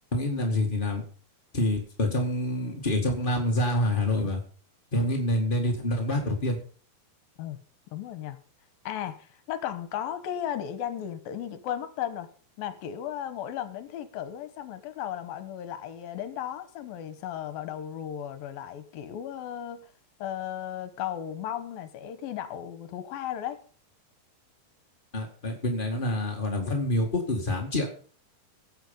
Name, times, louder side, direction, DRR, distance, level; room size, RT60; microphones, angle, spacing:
voice 1, 0.1-1.0 1.5-4.4 4.9-6.6 25.1-27.9, left 1 dB, 40° left, 1 dB, 0.7 m, -27 dB
voice 2, 7.9-8.4 8.9-12.3 12.6-19.8 20.2-23.6, left 10 dB, 75° left, 11 dB, 2.7 m, -35 dB
17.0 x 8.1 x 5.4 m, 0.42 s
omnidirectional pair, 4.5 m